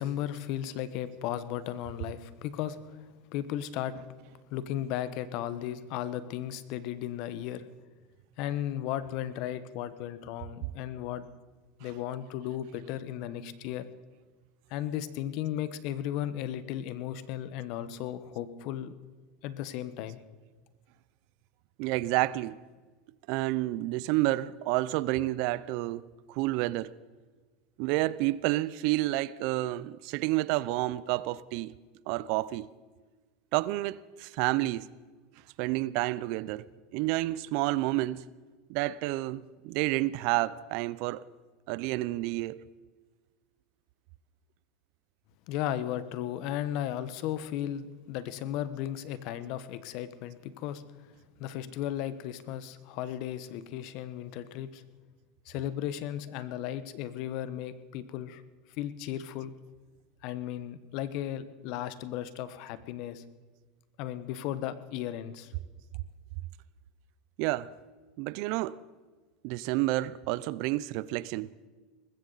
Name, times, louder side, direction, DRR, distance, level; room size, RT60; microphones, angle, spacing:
voice 1, 0.0-3.0 3.3-3.9 4.5-7.7 8.4-11.3 11.8-13.9 14.7-18.9 19.4-20.2 45.5-50.8 51.4-54.8 55.5-58.4 58.8-59.5 60.2-63.2 64.0-65.5, left 11 dB, 60° left, 1.0 m, -35 dB
voice 2, 21.8-22.6 23.3-26.9 27.8-31.7 32.1-32.7 33.5-34.9 35.6-36.7 36.9-38.2 38.7-41.2 41.7-42.6 67.4-67.7 68.2-68.8 69.4-71.5, right 17 dB, 65° right, 0.5 m, -30 dB
20.0 x 15.5 x 4.0 m
supercardioid pair, 125°, 0 cm